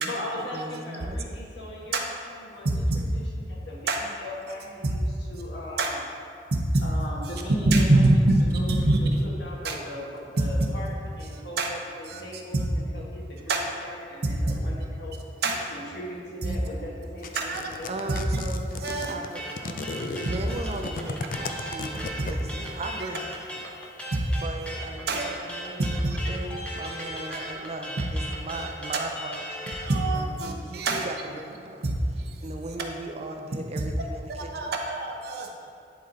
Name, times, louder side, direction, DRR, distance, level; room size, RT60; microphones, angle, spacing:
voice 1, 0.0-6.0 6.8-8.3 8.5-15.1 15.6-18.4, left 1 dB, 65° left, -4 dB, 1.6 m, -39 dB
voice 2, 0.5-1.2 17.9-23.3 24.4-29.4 30.1-30.4 30.6-31.8 32.4-34.7, right 2 dB, 35° right, 5 dB, 0.4 m, -37 dB
voice 3, 2.6-3.0 3.9-4.0 5.8-6.0 6.5-6.8 7.7-9.2 9.6-9.7 11.6-11.7 12.1-12.2 12.5-12.6 13.5-13.6 14.2-14.6 15.4-15.7 16.4-16.6 17.4-17.6 18.1-18.2 18.8-19.1 20.2-20.3 22.2-22.3 23.0-23.1 24.1-24.2 25.1-25.2 25.8-26.2 27.3-27.4 28.0-28.1 29.9-31.1 31.8-32.4 33.8-33.9 34.5-35.7, right 2 dB, 60° right, 1 dB, 0.8 m, -24 dB
sound 1, 17.2-22.7, left 4 dB, 50° left, 0.4 m, -35 dB
sound 2, 19.3-29.9, equal, 5° left, 0.9 m, -37 dB
10.5 x 4.0 x 4.0 m, 2.4 s
head